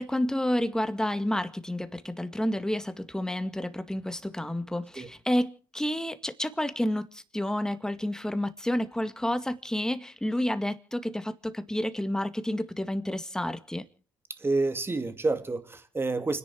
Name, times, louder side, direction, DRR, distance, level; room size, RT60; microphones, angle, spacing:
voice 1, 0.0-13.9, left 1 dB, 5° left, 2.0 m, -30 dB
voice 2, 14.4-16.4, right 3 dB, 25° right, 2.6 m, -28 dB
29.5 x 10.5 x 4.6 m
hypercardioid pair, 55°, 9 cm